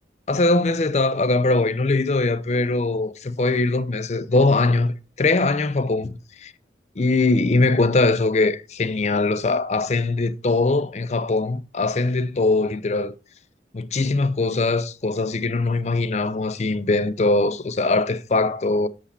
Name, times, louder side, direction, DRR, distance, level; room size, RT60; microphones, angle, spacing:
voice 1, 0.3-6.5 7.0-13.1 13.7-18.9, left 3 dB, 40° left, 0.5 m, -21 dB
8.5 x 5.0 x 4.1 m
head